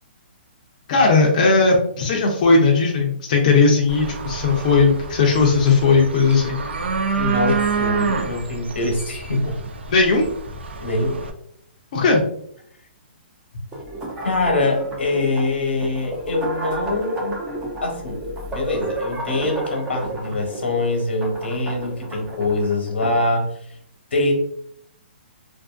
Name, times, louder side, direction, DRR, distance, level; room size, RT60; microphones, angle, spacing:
voice 1, 0.9-6.6 9.9-10.3 11.9-12.2, left 4 dB, 40° left, -1 dB, 0.5 m, -17 dB
sound 1, 3.9-11.3, right 5 dB, 85° right, 0.5 m, -28 dB
voice 2, 7.2-9.6 10.8-11.2 14.2-17.4 17.8-18.2 18.5-23.6 24.1-24.3, left 2 dB, 90° left, 1 dB, 1.0 m, -23 dB
sound 2, 13.7-23.3, right 1 dB, 10° right, 0.5 m, -31 dB
2.6 x 2.5 x 2.4 m, 0.66 s
hypercardioid pair, 160°, 6 cm